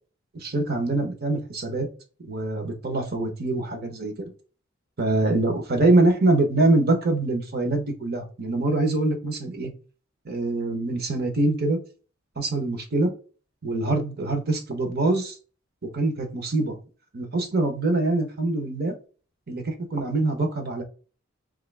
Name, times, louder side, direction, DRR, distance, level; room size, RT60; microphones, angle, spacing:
voice 1, 0.3-1.9 2.2-4.3 5.0-9.7 10.2-11.8 12.4-13.1 13.6-15.3 15.8-16.8 17.1-18.9 19.5-20.8, right 2 dB, 50° right, 5 dB, 1.0 m, -24 dB
3.7 x 3.0 x 3.4 m, 0.36 s
head